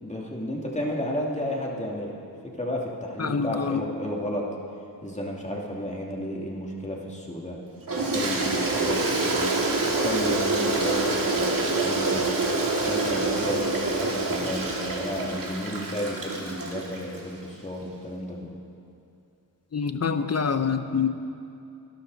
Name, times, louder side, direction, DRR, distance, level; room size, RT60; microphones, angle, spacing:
voice 1, 0.0-2.1 2.4-4.5 5.0-7.6 8.1-9.5 10.0-12.3 12.8-18.6, equal, 20° left, -2 dB, 2.6 m, -32 dB
voice 2, 3.2-3.8 19.7-21.1, left 6 dB, 40° left, 9 dB, 0.9 m, -26 dB
Toilet flush, 7.9-17.2, right 2 dB, 60° right, 2.3 m, -26 dB
26.5 x 11.5 x 4.1 m, 2.7 s
wide cardioid pair, 85°, 38 cm